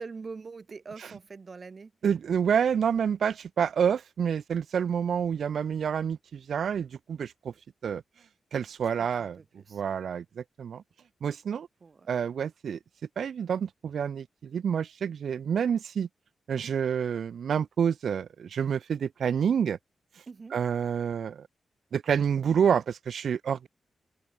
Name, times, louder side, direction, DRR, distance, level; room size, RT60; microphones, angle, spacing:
voice 1, 0.0-1.9 8.8-9.8 11.8-12.3 20.3-20.6, right 4 dB, 45° right, 2.8 m, -44 dB
voice 2, 2.0-7.5 7.8-8.0 8.5-9.4 9.7-10.8 11.2-11.7 12.1-12.8 13.2-16.1 16.5-19.8 20.1-20.2 20.5-21.4 21.9-23.7, right 7 dB, 75° right, 1.0 m, -28 dB
cardioid pair, 80°, 0 cm